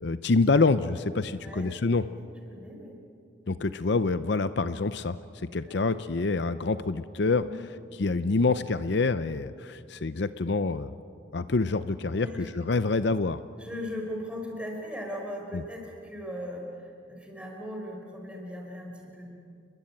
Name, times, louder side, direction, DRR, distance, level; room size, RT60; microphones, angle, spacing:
voice 1, 0.0-2.0 3.5-7.4 8.0-10.9 11.3-13.4 15.5-15.6, left 3 dB, 60° left, 13 dB, 0.6 m, -26 dB
voice 2, 1.3-1.7 2.1-2.2 2.5-3.0 5.6-5.8 7.4-7.6 12.1-12.5 13.6-19.3, equal, 5° right, 0 dB, 5.1 m, -38 dB
30.0 x 22.5 x 8.9 m, 2.6 s
head